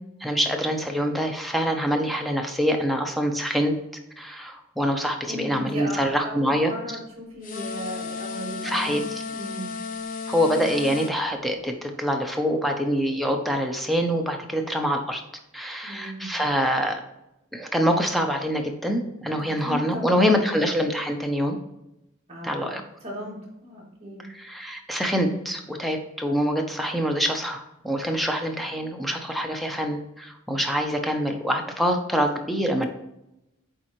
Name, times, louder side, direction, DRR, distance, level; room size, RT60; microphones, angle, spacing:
voice 1, 0.2-3.7 4.2-6.7 8.6-9.2 10.3-15.2 15.5-17.0 17.5-21.6 22.4-22.8 24.2-32.9, equal, ahead, 3 dB, 0.6 m, -25 dB
voice 2, 5.3-9.0 9.3-9.7 15.8-16.3 19.4-20.6 22.3-24.3, equal, 30° right, -5 dB, 2.2 m, -36 dB
sound 1, 7.4-11.1, left 5 dB, 40° left, 0.6 m, -34 dB
8.5 x 3.8 x 3.1 m, 0.88 s
head